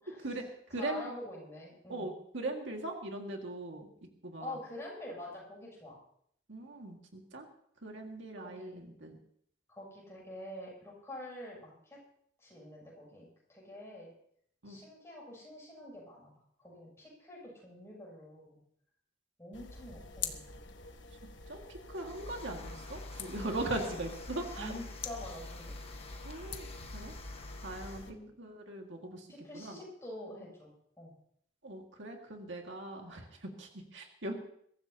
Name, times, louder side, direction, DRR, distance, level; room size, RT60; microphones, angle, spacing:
voice 1, 0.2-1.1 1.9-3.9 4.2-4.6 6.5-7.5 7.8-9.2 14.6-14.8 21.5-24.7 26.2-27.1 27.6-29.3 29.5-29.8 31.6-34.3, right 2 dB, 70° right, 2 dB, 2.0 m, -40 dB
voice 2, 0.7-2.1 4.4-6.0 8.4-8.8 9.7-12.0 12.4-14.1 14.6-16.3 16.6-18.6 19.4-20.4 23.6-24.0 24.6-25.8 28.1-28.3 29.3-30.7 31.0-31.1, left 1 dB, 15° left, -5 dB, 7.7 m, -46 dB
sound 1, 19.5-28.1, left 5 dB, 70° left, 1.3 m, -46 dB
sound 2, 21.9-28.1, left 2 dB, 30° left, 1.3 m, -47 dB
22.5 x 14.5 x 2.9 m, 0.68 s
head